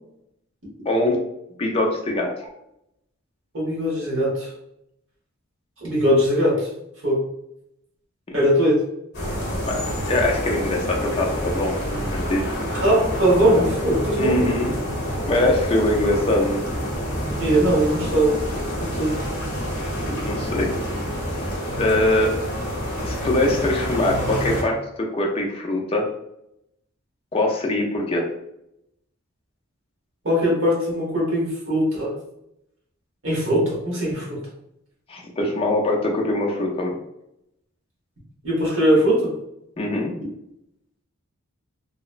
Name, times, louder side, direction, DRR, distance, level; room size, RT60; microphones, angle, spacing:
voice 1, 0.9-1.2 1.6-2.3 8.3-8.4 9.6-12.4 14.2-14.7 15.3-16.6 20.2-20.7 21.8-22.3 23.0-26.1 27.3-28.3 35.1-37.0 39.8-40.1, left 1 dB, 25° left, 0 dB, 0.4 m, -23 dB
voice 2, 3.5-4.5 5.8-6.7 7.0-7.2 8.3-8.8 12.8-14.6 17.4-18.4 18.8-19.1 30.2-32.1 33.2-34.4 38.4-39.3, equal, 60° right, -5 dB, 1.1 m, -20 dB
sound 1, 9.1-24.6, equal, 50° left, 0.8 m, -27 dB
2.8 x 2.1 x 2.4 m, 0.80 s
head